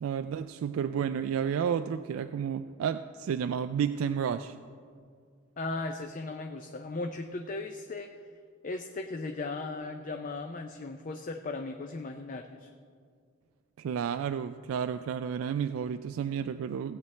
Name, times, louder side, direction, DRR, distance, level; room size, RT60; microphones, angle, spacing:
voice 1, 0.0-4.6 13.8-17.0, right 7 dB, 90° right, 10 dB, 0.3 m, -31 dB
voice 2, 5.6-8.1 8.6-12.7, left 3 dB, 40° left, 5 dB, 0.4 m, -37 dB
16.5 x 8.2 x 3.2 m, 2.1 s
head